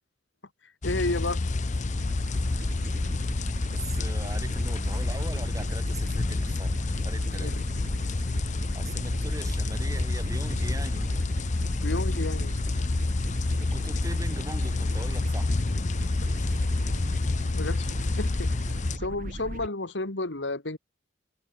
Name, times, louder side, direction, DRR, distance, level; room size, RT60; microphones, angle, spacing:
voice 1, 0.6-1.4 7.4-7.5 11.8-12.5 17.5-18.5 18.9-20.8, left 2 dB, 75° left, 2.3 m, -32 dB
sound 1, 0.8-19.0, left 2 dB, 40° left, 0.6 m, -28 dB
sound 2, 1.9-19.7, right 1 dB, 50° right, 2.1 m, -38 dB
voice 2, 3.7-7.6 8.7-11.2 13.5-15.5 16.4-16.6, right 1 dB, 20° right, 7.0 m, -41 dB
head